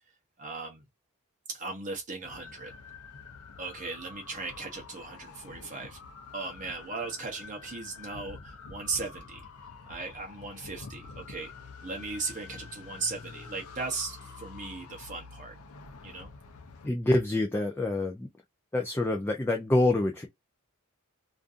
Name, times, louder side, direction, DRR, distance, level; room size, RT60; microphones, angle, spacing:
voice 1, 0.4-0.8 1.5-2.7 3.6-6.0 6.3-9.4 9.9-11.5 11.8-15.6 16.0-16.3, right 4 dB, 35° right, 0.6 m, -37 dB
sound 1, 2.2-16.9, left 4 dB, 90° left, 0.6 m, -47 dB
voice 2, 16.8-18.3 18.7-20.3, left 1 dB, 10° left, 0.3 m, -26 dB
2.5 x 2.4 x 2.4 m
head